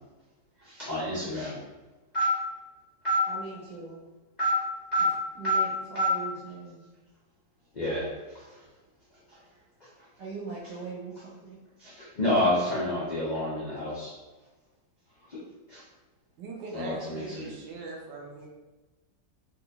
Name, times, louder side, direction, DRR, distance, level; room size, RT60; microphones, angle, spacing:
voice 1, 0.6-1.6 2.1-2.3 3.0-3.2 4.4-4.6 4.9-5.1 5.4-5.6 5.9-6.1 7.7-8.6 9.8-9.9 11.8-14.1 15.3-15.4 15.7-15.8 16.7-17.5, left 1 dB, 75° left, -8 dB, 0.4 m, -28 dB
voice 2, 3.3-4.0 5.4-6.8 10.2-11.6 14.4-14.5, right 3 dB, 65° right, -6 dB, 1.0 m, -40 dB
voice 3, 16.4-18.5, right 3 dB, 90° right, -1 dB, 1.4 m, -40 dB
3.9 x 2.4 x 2.8 m, 1.2 s
omnidirectional pair, 2.0 m